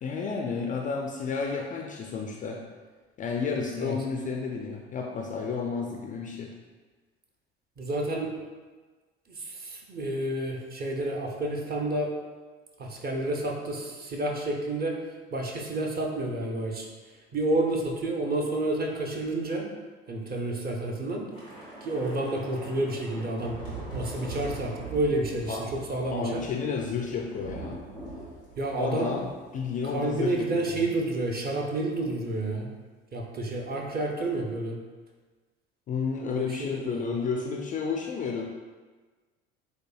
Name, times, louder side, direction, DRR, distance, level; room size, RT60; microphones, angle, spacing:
voice 1, 0.0-2.6 3.2-6.5 25.5-25.7 26.1-27.8 28.8-29.3 29.5-30.9 35.9-38.5, left 5 dB, 25° left, 1 dB, 0.4 m, -31 dB
voice 2, 7.8-8.3 9.3-12.1 12.8-15.0 15.3-16.9 17.3-19.7 20.1-21.2 21.8-23.6 23.9-26.4 28.6-29.1 29.8-32.7 33.1-34.8 36.3-37.1, right 2 dB, 30° right, 0 dB, 0.8 m, -30 dB
Thunder / Rain, 21.3-29.9 30.2-30.4 30.7-31.0, right 2 dB, 80° right, 1.5 m, -42 dB
7.8 x 2.6 x 2.3 m, 1.4 s
figure-of-eight pair, 60°, 32 cm